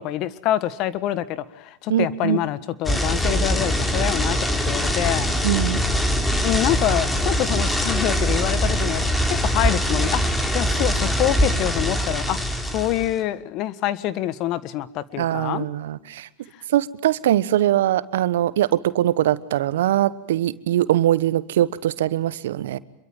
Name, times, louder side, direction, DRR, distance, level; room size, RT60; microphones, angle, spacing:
voice 1, 0.0-5.4 6.4-12.4 12.7-15.7, left 13 dB, 45° left, 16 dB, 1.5 m, -26 dB
voice 2, 1.9-2.4 5.4-5.8 15.1-16.3 16.7-22.8, right 12 dB, 70° right, 17 dB, 1.1 m, -22 dB
sound 1, 2.8-13.1, equal, 10° left, 3.7 m, -22 dB
26.5 x 22.5 x 8.9 m, 0.78 s
hypercardioid pair, 95°, 0 cm